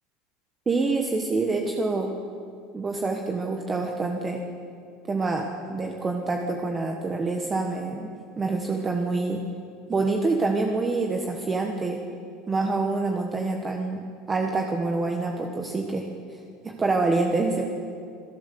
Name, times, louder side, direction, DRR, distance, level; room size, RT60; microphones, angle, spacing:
voice 1, 0.7-2.1 2.7-4.4 5.1-8.1 8.4-9.4 9.9-12.0 12.5-16.1 16.6-17.7, right 3 dB, 15° right, 2 dB, 1.2 m, -26 dB
27.0 x 18.0 x 6.8 m, 2.4 s
cardioid pair, 180°, 0 cm